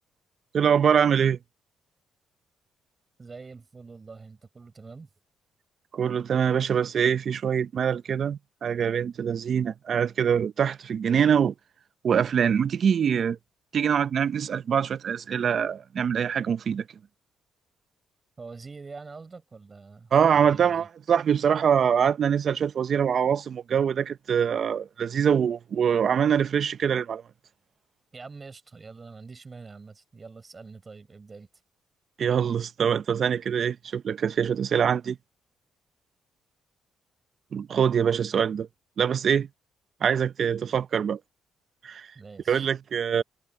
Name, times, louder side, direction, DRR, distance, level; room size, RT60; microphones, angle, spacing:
voice 1, 0.5-1.4 5.9-11.5 12.0-13.4 13.7-16.8 20.1-27.2 32.2-35.2 37.5-38.7 39.0-39.5 40.0-41.2 41.8-42.1 42.5-43.2, right 7 dB, 55° right, 0.7 m, -24 dB
voice 2, 3.2-5.1 18.4-20.9 28.1-31.5 42.1-42.7, right 4 dB, 30° right, 5.7 m, -45 dB
cardioid pair, 90°, 0 cm